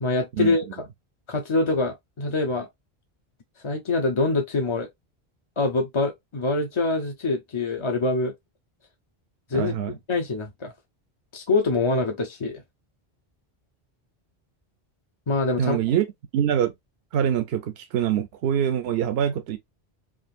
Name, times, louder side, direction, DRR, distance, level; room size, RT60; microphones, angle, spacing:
voice 1, 0.0-0.7 1.3-2.7 3.6-4.9 5.6-8.3 9.5-9.7 10.1-10.7 11.3-12.6 15.3-15.8, left 3 dB, 40° left, 0.5 m, -24 dB
voice 2, 9.5-9.9 15.6-16.0 16.3-16.7 17.1-19.6, right 9 dB, 75° right, 0.8 m, -24 dB
3.6 x 2.4 x 2.3 m
omnidirectional pair, 1.1 m